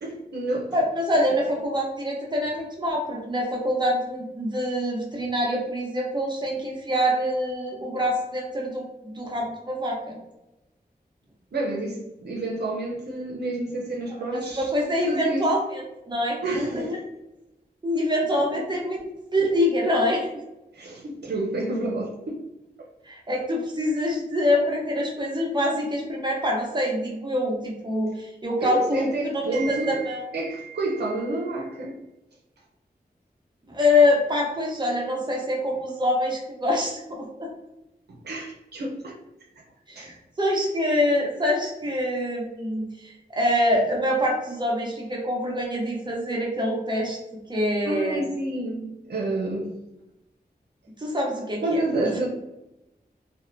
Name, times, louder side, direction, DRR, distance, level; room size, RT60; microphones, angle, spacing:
voice 1, 0.0-0.8 11.5-14.7 15.1-15.5 16.4-16.9 20.7-22.4 28.6-32.0 38.2-39.2 40.0-40.1 47.8-49.7 51.6-52.3, right 2 dB, 85° right, -1 dB, 0.5 m, -29 dB
voice 2, 0.7-10.2 14.2-17.0 17.8-19.0 19.3-20.3 23.0-30.2 33.7-37.5 39.9-47.2 47.5-48.3 51.0-52.1, left 1 dB, 25° right, -2 dB, 0.8 m, -25 dB
2.7 x 2.1 x 2.5 m, 0.93 s
wide cardioid pair, 55°, 17 cm